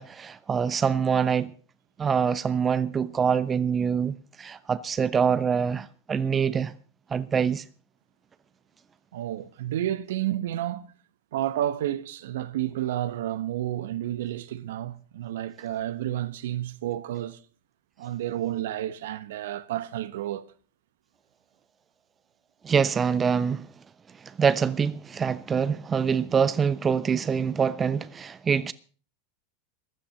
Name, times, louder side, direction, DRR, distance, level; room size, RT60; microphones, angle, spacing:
voice 1, 0.0-1.5 2.0-6.7 7.1-7.6 22.6-23.7 24.4-28.7, right 6 dB, 25° right, 0.9 m, -25 dB
voice 2, 9.1-10.9 11.3-17.4 18.0-20.5, right 12 dB, 70° right, 1.1 m, -31 dB
15.5 x 11.0 x 6.5 m
hypercardioid pair, 90°, 0 cm